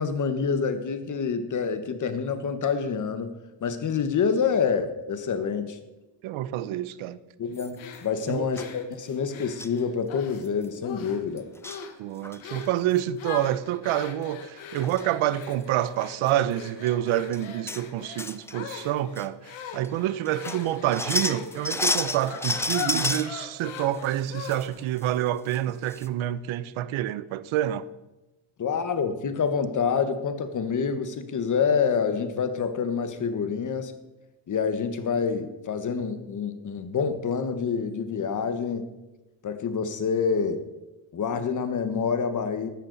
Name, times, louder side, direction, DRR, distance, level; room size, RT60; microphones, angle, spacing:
voice 1, 0.0-3.3 3.6-5.8 7.4-11.5 28.6-33.9 34.5-38.9 39.4-40.6 41.1-42.7, left 6 dB, 40° left, 1.3 m, -27 dB
voice 2, 6.2-7.2 8.3-8.5 12.0-27.9, right 12 dB, 85° right, 0.8 m, -27 dB
sound 1, 7.6-8.0 8.6-8.7 9.6-9.8 10.2-10.3 10.4-10.7 11.4-11.8 12.2-12.7 14.4-14.5 14.8-15.0 15.4-15.5 16.3-16.4 16.9-17.0 17.3-17.8 18.2-18.8 19.2-19.3 19.8-19.9 20.3-23.3 23.8-24.6 25.0-25.1 25.5-25.6 25.9-26.1, left 2 dB, 5° left, 0.3 m, -30 dB
sound 2, 7.8-10.4 10.8-11.3 11.6-12.0 12.4-12.8 13.2-24.9, left 7 dB, 90° left, 1.7 m, -40 dB
14.0 x 11.5 x 4.0 m
cardioid pair, 135°, 47 cm